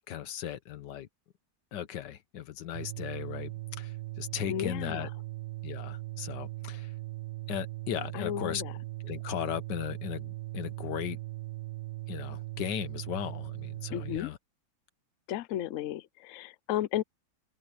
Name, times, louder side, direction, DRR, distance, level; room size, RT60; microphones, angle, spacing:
voice 1, 0.1-1.1 1.7-3.5 3.8-5.1 5.6-6.9 7.5-8.6 9.0-11.2 12.1-14.4, left 10 dB, 65° left, 1.5 m, -37 dB
sound 1, 2.7-14.2, right 19 dB, 60° right, 1.1 m, -39 dB
voice 2, 4.5-5.1 8.1-8.7 13.9-14.3 15.3-17.0, left 12 dB, 90° left, 0.6 m, -34 dB
omnidirectional pair, 2.1 m